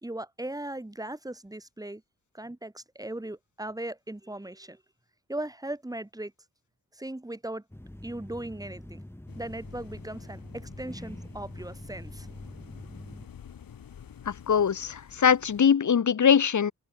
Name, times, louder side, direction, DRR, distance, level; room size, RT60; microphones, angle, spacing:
voice 1, 0.0-2.0 2.3-4.8 5.3-6.3 7.0-7.6 8.0-9.0 9.4-12.3, right 1 dB, 10° right, 3.8 m, -38 dB
sound 1, 7.7-13.3, left 1 dB, 5° left, 5.0 m, -44 dB
sound 2, 9.3-15.7, left 8 dB, 85° left, 5.6 m, -49 dB
voice 2, 14.3-16.7, left 7 dB, 60° left, 1.9 m, -22 dB
wide cardioid pair, 130°, 34 cm